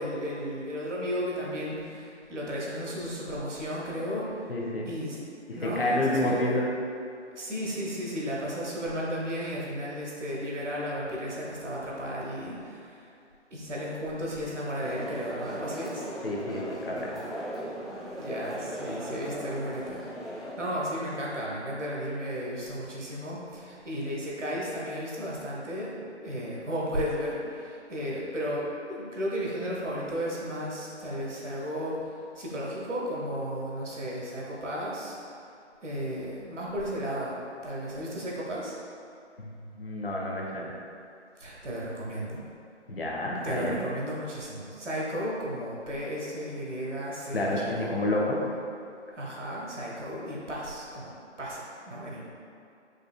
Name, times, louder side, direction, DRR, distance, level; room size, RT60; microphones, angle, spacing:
voice 1, 0.0-4.5 4.9-6.6 7.3-13.1 13.5-16.1 18.2-25.9 26.2-35.2 35.8-38.8 41.4-42.4 43.4-47.9 49.1-51.1 51.4-52.2, equal, 75° right, -4 dB, 1.1 m, -34 dB
voice 2, 4.5-4.9 5.5-6.7 16.2-17.1 39.4-40.7 42.9-43.8 47.3-48.4, left 1 dB, 50° left, -3 dB, 0.7 m, -29 dB
sound 1, 14.8-20.5, equal, ahead, 0.3 m, -38 dB
4.8 x 2.4 x 2.3 m, 2.5 s
figure-of-eight pair, 165°, 36 cm